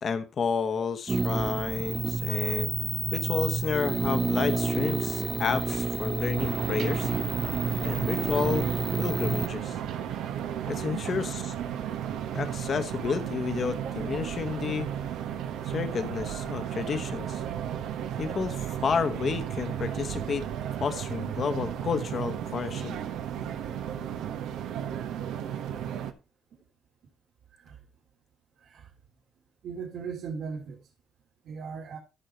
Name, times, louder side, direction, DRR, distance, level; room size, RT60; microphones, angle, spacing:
voice 1, 0.0-2.7 3.1-7.1 7.8-8.7 9.0-9.8 10.6-11.6 12.3-14.9 15.6-17.4 18.2-20.5 20.8-23.0, left 6 dB, 50° left, 1.1 m, -31 dB
sound 1, 1.1-9.5, right 3 dB, 25° right, 0.8 m, -29 dB
sound 2, 6.4-26.1, right 10 dB, 90° right, 1.2 m, -34 dB
voice 2, 29.6-30.8 31.4-32.0, right 5 dB, 75° right, 2.7 m, -38 dB
14.5 x 5.5 x 4.4 m
cardioid pair, 90°, 0 cm